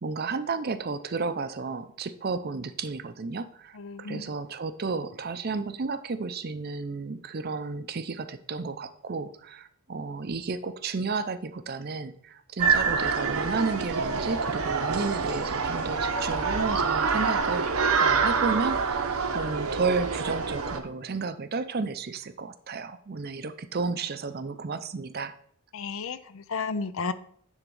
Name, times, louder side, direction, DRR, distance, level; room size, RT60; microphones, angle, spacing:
voice 1, 0.0-17.7 18.0-25.4, right 4 dB, 45° right, 12 dB, 0.5 m, -32 dB
voice 2, 3.8-4.3 25.7-27.1, left 4 dB, 70° left, 13 dB, 0.5 m, -33 dB
sound 1, 12.6-20.8, right 5 dB, 80° right, 0.8 m, -26 dB
10.0 x 3.6 x 5.3 m, 0.65 s
head